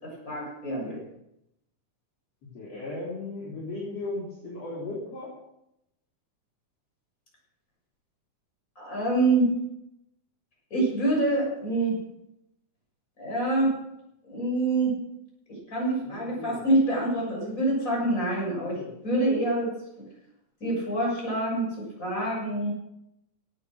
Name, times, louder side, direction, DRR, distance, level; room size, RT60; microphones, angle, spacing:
voice 1, 0.0-0.9 8.8-9.5 10.7-12.0 13.2-13.7 14.2-14.9 15.7-18.8 19.0-19.7 20.6-21.7 22.0-22.7, right 2 dB, 25° left, -3 dB, 7.3 m, -26 dB
voice 2, 2.5-5.3 16.0-16.6 18.8-18.9, left 2 dB, 55° left, -6 dB, 4.5 m, -36 dB
17.5 x 9.6 x 6.5 m, 0.83 s
omnidirectional pair, 3.5 m